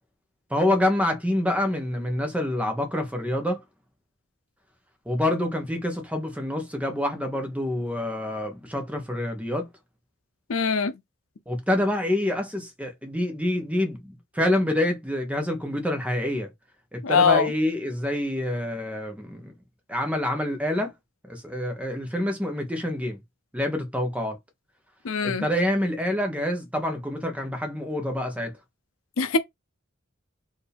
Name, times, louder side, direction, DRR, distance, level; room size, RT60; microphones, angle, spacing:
voice 1, 0.5-3.6 5.1-9.7 11.5-16.5 16.9-19.5 19.9-20.9 21.3-23.2 23.5-24.4 25.2-28.5, left 1 dB, 5° right, 1.0 m, -27 dB
voice 2, 10.5-10.9 17.0-17.5 25.0-25.4 29.2-29.4, left 5 dB, 80° left, 0.6 m, -22 dB
4.6 x 2.8 x 3.4 m
head